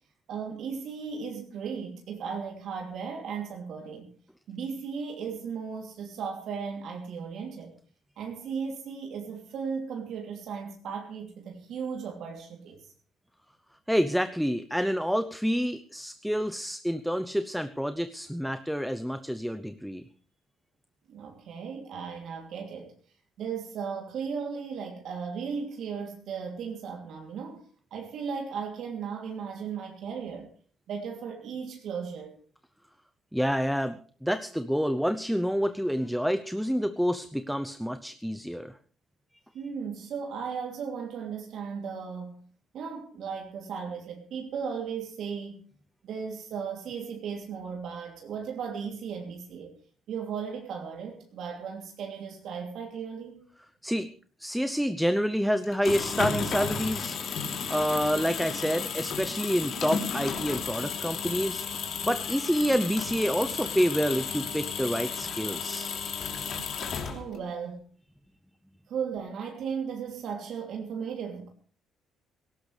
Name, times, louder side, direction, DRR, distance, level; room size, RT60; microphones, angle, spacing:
voice 1, 0.3-4.1 4.5-7.7 8.2-12.9 21.1-22.9 23.4-27.7 27.9-30.5 30.9-32.4 39.5-42.4 42.7-45.6 46.0-49.7 50.1-53.5 66.6-67.8 68.9-71.5, right 6 dB, 60° right, 2 dB, 2.9 m, -36 dB
voice 2, 13.9-20.0 33.3-38.7 53.8-54.1 54.4-57.2 57.7-61.6 62.0-65.9, equal, ahead, 10 dB, 0.7 m, -28 dB
sound 1, 55.6-67.5, left 6 dB, 50° left, 3.2 m, -33 dB
18.5 x 17.0 x 3.3 m, 0.43 s
cardioid pair, 150°, 0 cm